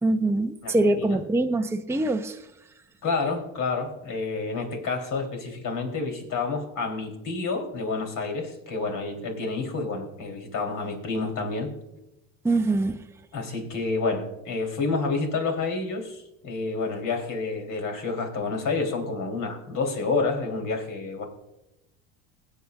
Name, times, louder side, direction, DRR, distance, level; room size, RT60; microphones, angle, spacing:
voice 1, 0.0-2.4 12.4-13.0, right 2 dB, 5° right, 5 dB, 0.7 m, -24 dB
voice 2, 0.6-1.2 3.0-11.7 13.3-21.3, left 3 dB, 50° left, 3 dB, 3.3 m, -29 dB
21.0 x 8.6 x 2.4 m, 0.91 s
supercardioid pair, 85°, 39 cm